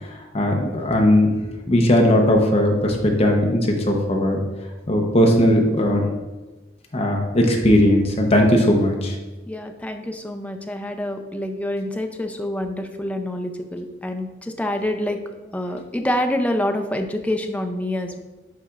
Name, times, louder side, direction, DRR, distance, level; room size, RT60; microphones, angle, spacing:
voice 1, 0.1-1.4 1.7-4.4 4.9-6.0 6.9-9.1, left 1 dB, 35° left, 2 dB, 0.8 m, -18 dB
voice 2, 9.5-18.2, left 1 dB, 5° left, 5 dB, 0.4 m, -27 dB
10.5 x 4.1 x 2.4 m, 1.2 s
head